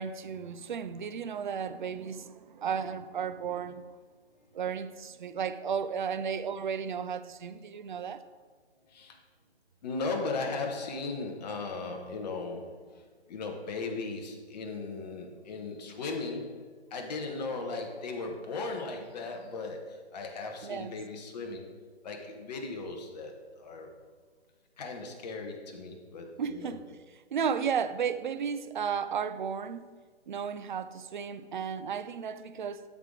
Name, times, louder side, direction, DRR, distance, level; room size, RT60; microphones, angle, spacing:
voice 1, 0.0-3.8 4.5-8.2 20.6-20.9 26.4-26.8 27.3-29.8 30.3-32.8, right 7 dB, 45° right, 0.5 m, -34 dB
voice 2, 8.9-9.2 9.8-21.7 22.0-23.9 24.8-26.8, left 3 dB, 40° left, 1.3 m, -37 dB
12.5 x 5.1 x 3.8 m
figure-of-eight pair, 145°, 34 cm